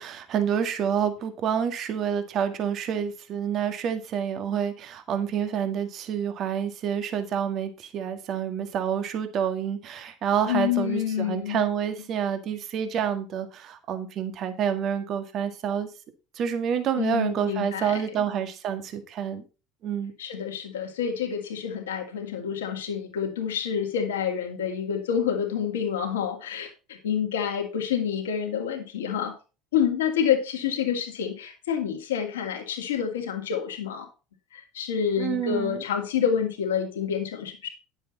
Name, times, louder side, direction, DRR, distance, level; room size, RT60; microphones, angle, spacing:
voice 1, 0.0-15.9 16.4-19.4 19.8-20.1 35.2-35.8, right 8 dB, 50° right, 8 dB, 1.9 m, -28 dB
voice 2, 10.5-11.6 17.0-18.0 20.2-29.3 29.7-34.1 34.5-37.7, left 8 dB, 85° left, 2 dB, 2.4 m, -28 dB
10.0 x 8.1 x 4.1 m, 0.32 s
hypercardioid pair, 80°, 0 cm